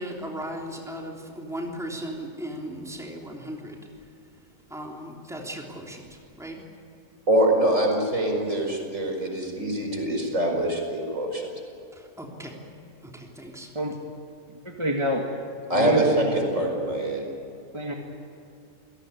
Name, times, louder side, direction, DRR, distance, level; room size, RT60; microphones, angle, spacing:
voice 1, 0.0-4.4 4.7-6.7 11.9-12.6 13.0-13.7, equal, ahead, -1 dB, 3.4 m, -37 dB
voice 2, 7.3-11.5 15.7-17.2, right 1 dB, 60° right, 2 dB, 5.4 m, -24 dB
voice 3, 14.7-15.3 15.7-16.2 17.7-17.9, equal, 20° right, 1 dB, 1.9 m, -26 dB
28.5 x 18.0 x 9.5 m, 2.6 s
omnidirectional pair, 1.5 m